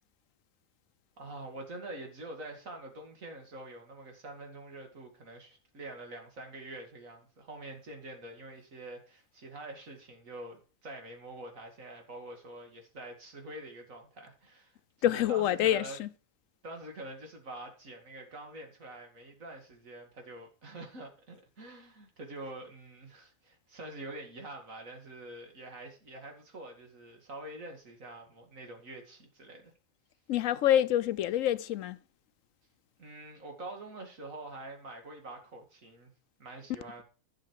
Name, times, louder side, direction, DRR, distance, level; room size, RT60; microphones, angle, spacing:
voice 1, 1.2-16.0 16.6-29.7 33.0-36.1 36.4-37.0, right 2 dB, 75° right, 2.7 m, -46 dB
voice 2, 15.0-16.1 30.3-32.0, left 12 dB, 75° left, 1.0 m, -27 dB
11.5 x 6.4 x 4.7 m
omnidirectional pair, 1.4 m